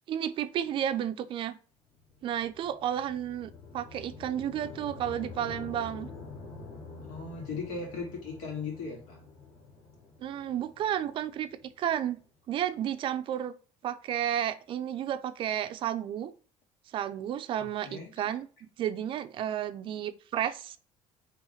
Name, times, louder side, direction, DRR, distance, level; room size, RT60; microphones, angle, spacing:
voice 1, 0.1-1.6 2.2-6.1 10.2-11.5 11.8-12.2 12.5-13.5 13.8-16.3 16.9-18.5 18.8-20.8, right 10 dB, 45° right, 11 dB, 0.4 m, -32 dB
sound 1, 1.9-12.2, left 4 dB, 50° left, 1.4 m, -47 dB
voice 2, 7.1-9.2 17.8-18.1, left 4 dB, 90° left, 0 dB, 2.0 m, -37 dB
4.8 x 3.1 x 3.1 m, 0.39 s
cardioid pair, 160°, 12 cm